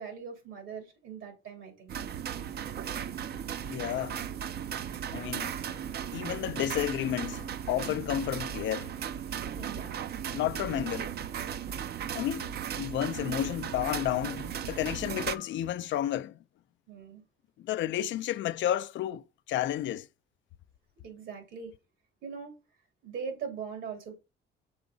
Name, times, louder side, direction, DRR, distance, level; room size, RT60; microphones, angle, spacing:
voice 1, 0.0-1.9 9.5-10.0 12.4-12.5 16.9-17.2 21.0-21.7 22.2-22.5 23.0-24.2, right 6 dB, 80° right, 2.8 m, -41 dB
sound 1, 1.9-15.4, right 9 dB, 55° right, 0.5 m, -36 dB
voice 2, 3.7-4.2 5.1-5.9 6.1-8.9 10.3-11.1 12.1-12.5 12.8-16.4 17.6-20.1, left 12 dB, 70° left, 0.4 m, -32 dB
6.3 x 4.6 x 3.9 m
cardioid pair, 90°, 20 cm